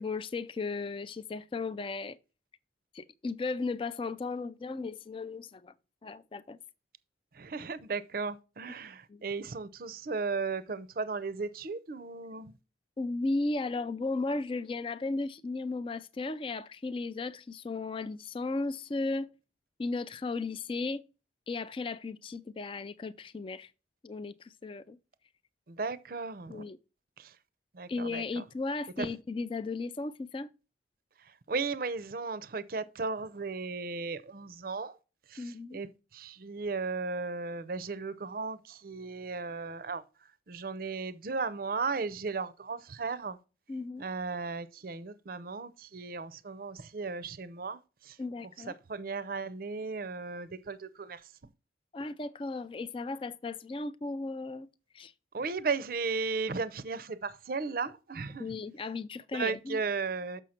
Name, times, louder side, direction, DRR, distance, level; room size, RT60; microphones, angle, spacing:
voice 1, 0.0-2.2 2.9-5.7 6.0-6.6 8.7-8.8 9.1-9.2 13.0-19.3 19.8-21.0 21.5-23.7 24.0-25.0 26.5-26.8 27.9-30.5 35.4-35.8 43.7-44.0 48.2-48.8 51.9-54.7 54.9-55.1 58.4-59.8, left 3 dB, 30° left, 0.3 m, -35 dB
voice 2, 7.4-12.5 25.7-26.6 27.8-28.2 31.5-34.9 35.3-35.4 35.7-35.9 36.1-40.0 40.5-43.4 44.0-47.8 48.1-48.2 48.9-51.2 55.3-58.5 59.3-60.4, right 4 dB, 50° right, 0.5 m, -35 dB
6.4 x 6.3 x 4.3 m
head